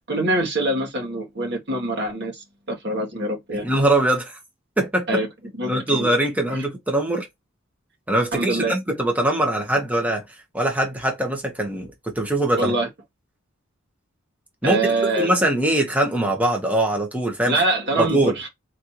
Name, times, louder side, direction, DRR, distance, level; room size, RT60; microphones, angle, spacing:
voice 1, 0.0-3.7 5.1-5.3 5.6-6.1 6.5-6.6 8.3-8.8 12.6-12.9 14.6-15.3 17.5-18.5, right 2 dB, 55° right, 2.0 m, -24 dB
voice 2, 3.6-4.4 4.8-5.1 5.7-7.3 8.1-10.2 10.5-12.7 14.6-14.8 15.2-17.6 18.0-18.3, right 1 dB, 5° right, 1.2 m, -22 dB
3.9 x 3.3 x 2.8 m
head